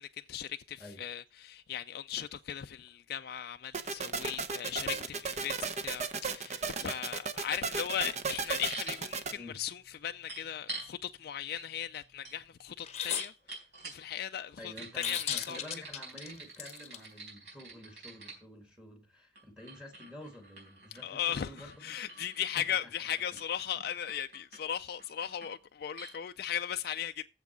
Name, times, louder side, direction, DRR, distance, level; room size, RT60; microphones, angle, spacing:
voice 1, 0.0-15.7 21.0-27.3, left 9 dB, 60° left, 0.4 m, -37 dB
sound 1, 3.7-9.3, right 5 dB, 40° right, 0.8 m, -35 dB
sound 2, 8.7-9.0 10.3-10.9 11.6-11.7 11.9-14.2 14.8-18.4 19.4-22.8 23.1-23.7 24.1-24.6 25.0-25.5 26.0-26.2 26.4-26.5, right 2 dB, 70° right, 4.2 m, -47 dB
sound 3, 12.8-13.3 15.0-17.0, left 9 dB, 40° left, 0.8 m, -35 dB
voice 2, 14.6-21.9 22.6-22.7, left 1 dB, 5° right, 1.6 m, -49 dB
7.4 x 6.0 x 7.0 m
head